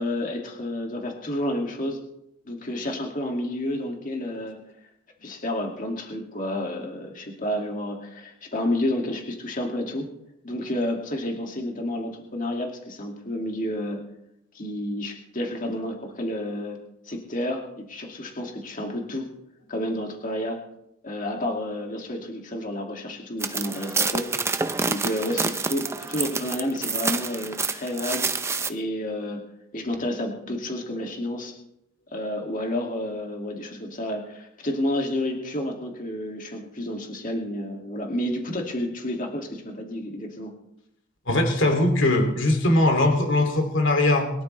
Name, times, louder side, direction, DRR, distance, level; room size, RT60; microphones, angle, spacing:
voice 1, 0.0-2.0 2.5-4.6 5.2-10.1 10.4-14.1 14.5-16.8 17.1-19.3 19.7-20.6 21.0-28.3 28.7-29.5 29.7-31.5 32.1-40.5, left 1 dB, 40° left, 1 dB, 2.3 m, -30 dB
sound 1, 23.4-28.7, right 4 dB, 10° right, 0.5 m, -28 dB
voice 2, 41.3-44.3, left 1 dB, 60° left, 4 dB, 2.7 m, -20 dB
22.5 x 12.5 x 3.3 m, 0.80 s
head